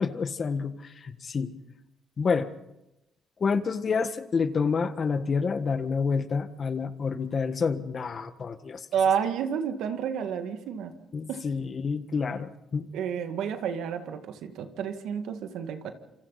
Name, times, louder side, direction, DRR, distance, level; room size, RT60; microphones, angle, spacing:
voice 1, 0.0-1.6 2.2-2.5 3.4-8.8 11.1-12.9, left 5 dB, 45° left, 10 dB, 1.5 m, -28 dB
voice 2, 8.9-10.9 11.3-11.4 12.9-15.9, right 7 dB, 85° right, 6 dB, 2.0 m, -30 dB
28.0 x 26.5 x 4.2 m, 0.91 s
cardioid pair, 90°, 0 cm